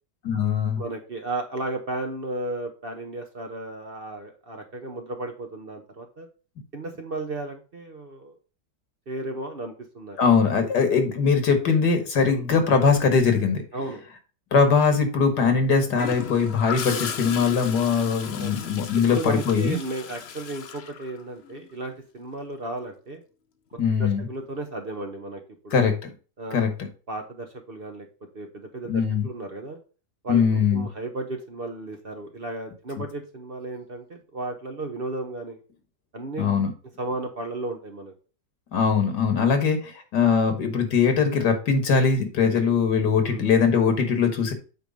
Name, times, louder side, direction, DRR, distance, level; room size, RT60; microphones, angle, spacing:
voice 1, 0.2-0.8 10.2-13.6 14.5-19.8 23.8-24.3 25.7-26.1 26.5-26.9 28.9-29.3 30.3-30.9 36.4-36.7 38.7-44.5, left 5 dB, 80° left, 7 dB, 2.0 m, -21 dB
voice 2, 0.8-6.3 6.7-8.3 9.1-10.2 12.2-12.5 13.7-14.0 16.8-17.1 18.4-18.6 19.1-23.2 24.0-25.9 26.4-26.7 27.1-28.1 28.3-29.8 30.2-35.6 36.1-36.5 37.0-38.1 39.4-39.5 43.2-43.5, right 2 dB, 40° right, 4 dB, 1.0 m, -34 dB
Gurgling / Toilet flush, 16.0-21.7 23.7-23.9, left 7 dB, 60° left, 0.7 m, -36 dB
8.3 x 3.3 x 5.1 m, 0.35 s
omnidirectional pair, 1.8 m